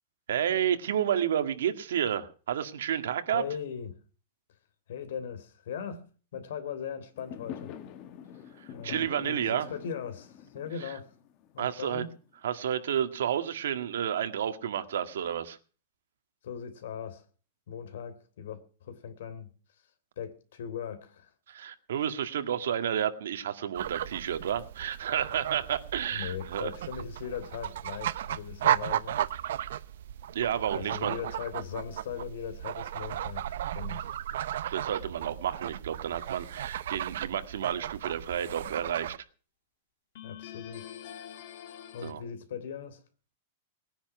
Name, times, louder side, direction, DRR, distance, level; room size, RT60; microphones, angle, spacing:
voice 1, 0.3-3.4 8.8-9.7 10.8-10.9 11.6-12.1 12.4-15.6 21.5-26.7 30.3-31.2 34.7-39.1 42.0-42.2, right 9 dB, 85° right, 1.9 m, -31 dB
voice 2, 3.3-3.9 4.9-6.1 6.3-7.7 8.7-11.1 11.5-12.1 16.4-17.2 17.7-19.5 20.2-21.3 26.1-29.2 30.7-34.1 40.2-41.0 41.9-43.0, left 8 dB, 70° left, 3.3 m, -39 dB
Fireworks, 7.1-12.4, left 9 dB, 30° left, 1.2 m, -46 dB
sound 1, 23.7-39.2, right 11 dB, 65° right, 0.7 m, -35 dB
sound 2, 36.1-36.8 40.2-42.1, left 10 dB, 50° left, 2.1 m, -45 dB
20.5 x 10.0 x 5.9 m
supercardioid pair, 175°, 0 cm